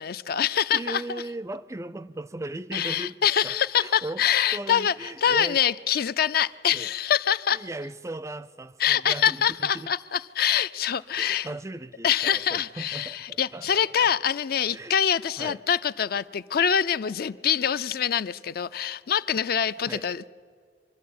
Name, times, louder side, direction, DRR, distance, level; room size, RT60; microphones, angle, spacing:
voice 1, 0.0-1.2 2.7-7.6 8.8-11.5 12.0-20.3, left 9 dB, 55° left, 0.4 m, -25 dB
voice 2, 0.7-3.2 3.4-4.2 4.5-5.6 6.7-6.9 7.5-9.9 11.2-14.1 14.7-15.0 15.4-15.6 19.8-20.1, right 2 dB, 15° right, 0.4 m, -37 dB
24.5 x 12.5 x 8.5 m
head